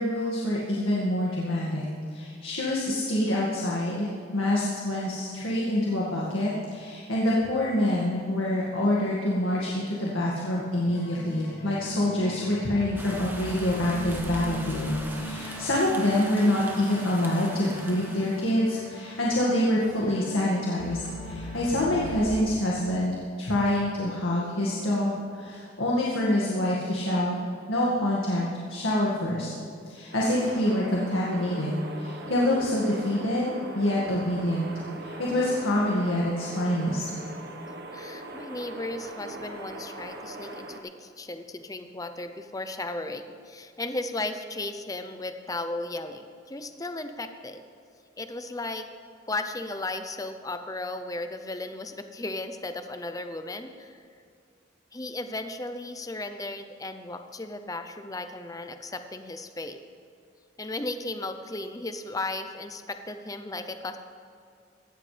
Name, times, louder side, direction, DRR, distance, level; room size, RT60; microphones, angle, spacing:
voice 1, 0.0-27.4 27.7-29.5 29.9-34.7 35.0-37.0, left 1 dB, 80° left, -5 dB, 2.0 m, -26 dB
sound 1, 10.8-22.4, left 2 dB, 65° left, 3.4 m, -39 dB
sound 2, 13.0-18.5, right 1 dB, 10° right, 1.0 m, -41 dB
sound 3, 30.1-40.8, right 1 dB, 50° right, 1.2 m, -40 dB
voice 2, 37.9-47.6 48.2-48.9 49.3-54.0 54.9-59.8 60.6-64.0, left 2 dB, 15° left, 8 dB, 0.6 m, -35 dB
17.5 x 13.5 x 3.4 m, 2.3 s
head